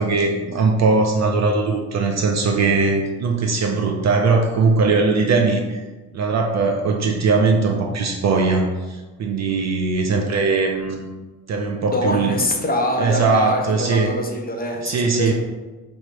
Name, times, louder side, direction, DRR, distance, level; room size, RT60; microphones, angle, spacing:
voice 1, 0.0-5.8 6.1-11.1 11.5-12.4 13.0-14.1 14.8-15.3, right 4 dB, 40° right, 2 dB, 0.4 m, -20 dB
voice 2, 11.9-15.3, left 1 dB, 20° left, 1 dB, 0.6 m, -24 dB
3.2 x 2.6 x 3.1 m, 1.2 s
hypercardioid pair, 45°, 46 cm